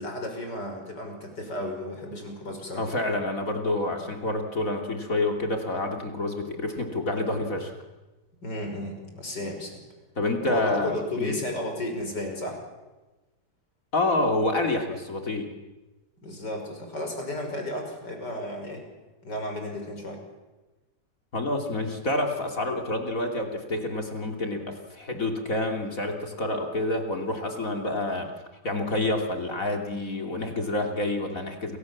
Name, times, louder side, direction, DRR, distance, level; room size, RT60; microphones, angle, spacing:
voice 1, 0.0-2.8 8.4-9.8 10.4-12.6 16.2-18.8 19.2-20.2, left 1 dB, 80° left, 3 dB, 6.5 m, -33 dB
voice 2, 2.8-7.7 10.2-11.4 13.9-15.5 21.3-28.3 28.6-31.8, left 2 dB, 50° left, 3 dB, 3.3 m, -28 dB
29.0 x 25.0 x 7.4 m, 1.1 s
omnidirectional pair, 1.8 m